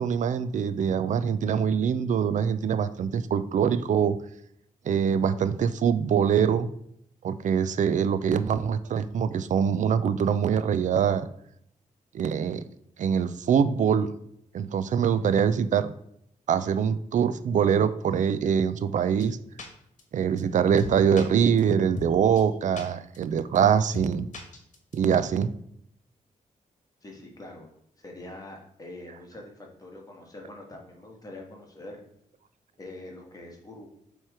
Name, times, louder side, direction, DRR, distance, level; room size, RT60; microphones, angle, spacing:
voice 1, 0.0-4.2 4.9-6.7 7.2-11.3 12.1-12.6 13.0-14.1 14.5-15.9 16.5-19.4 20.1-24.3 24.9-25.5, right 7 dB, 60° right, 12 dB, 0.4 m, -24 dB
sound 1, 19.2-19.3 19.6-19.7 20.0-20.1 20.4-20.5 20.8-21.2 21.6-21.7 21.9-22.1 22.4-22.5 22.8-22.9 23.1-23.2 23.5-23.6 23.9-24.1 24.3-24.9, left 3 dB, 60° left, 1.3 m, -37 dB
voice 2, 27.0-27.7 28.0-32.0 32.8-33.9, left 2 dB, 25° left, 1 dB, 1.4 m, -44 dB
7.4 x 3.2 x 4.8 m, 0.71 s
wide cardioid pair, 120°, 14 cm